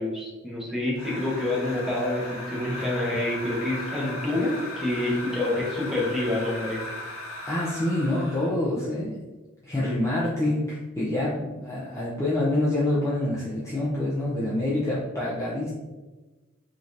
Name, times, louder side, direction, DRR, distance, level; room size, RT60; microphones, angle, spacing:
voice 1, 0.0-6.8, left 1 dB, ahead, -5 dB, 0.9 m, -27 dB
sound 1, 0.9-8.6, left 1 dB, 80° left, 0.9 m, -37 dB
voice 2, 7.5-9.2 9.6-15.7, left 1 dB, 15° left, -7 dB, 0.5 m, -26 dB
5.0 x 2.8 x 2.6 m, 1.2 s
head